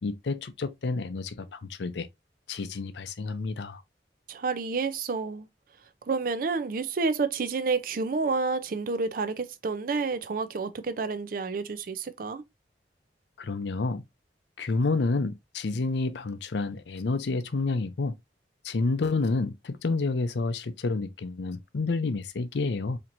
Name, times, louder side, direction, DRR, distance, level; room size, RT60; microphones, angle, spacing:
voice 1, 0.0-2.1 2.5-3.8 13.4-14.0 14.6-18.1 18.6-23.0, left 3 dB, 80° left, 0.5 m, -29 dB
voice 2, 4.3-5.5 6.1-12.4, right 4 dB, 50° right, 0.4 m, -29 dB
4.3 x 2.9 x 2.5 m
head